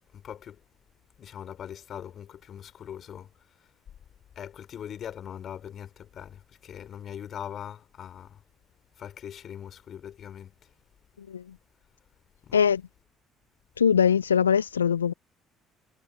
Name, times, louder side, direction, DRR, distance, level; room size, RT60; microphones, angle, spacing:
voice 1, 0.1-0.6 1.2-3.3 3.6-3.7 4.4-8.4 9.0-10.7 12.4-12.6, left 9 dB, 50° left, 3.8 m, -41 dB
voice 2, 13.8-15.1, left 7 dB, 90° left, 0.4 m, -22 dB
figure-of-eight pair, 55°, 0 cm